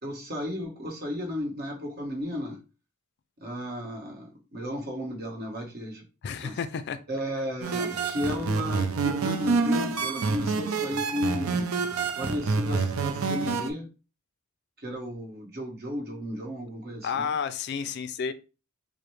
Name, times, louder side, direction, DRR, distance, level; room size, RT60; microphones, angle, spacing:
voice 1, 0.0-2.6 3.4-6.0 6.4-6.6 7.1-11.7 12.1-13.9 14.8-17.3, left 1 dB, 45° right, 1.2 m, -34 dB
voice 2, 6.2-7.0 17.0-18.3, left 6 dB, 50° left, 0.3 m, -31 dB
sound 1, 7.6-13.7, right 4 dB, 80° right, 0.5 m, -27 dB
4.9 x 2.1 x 3.1 m
head